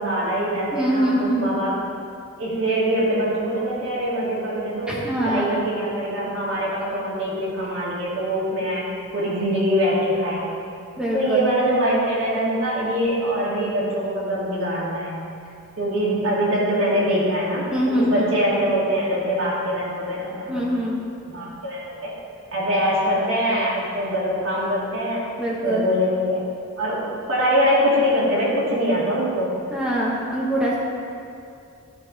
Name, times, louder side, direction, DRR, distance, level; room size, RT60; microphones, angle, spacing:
voice 1, 0.0-1.7 2.4-8.9 9.1-10.6 11.1-15.2 15.8-17.7 18.0-20.6 21.3-22.1 22.5-25.3 25.6-26.4 26.8-29.5, equal, 70° right, -8 dB, 2.1 m, -23 dB
voice 2, 0.7-1.5 4.9-5.6 11.0-11.5 17.7-18.3 20.5-21.0 25.4-25.9 29.7-30.7, right 1 dB, 5° right, -6 dB, 1.1 m, -23 dB
13.0 x 5.5 x 4.0 m, 2.5 s
head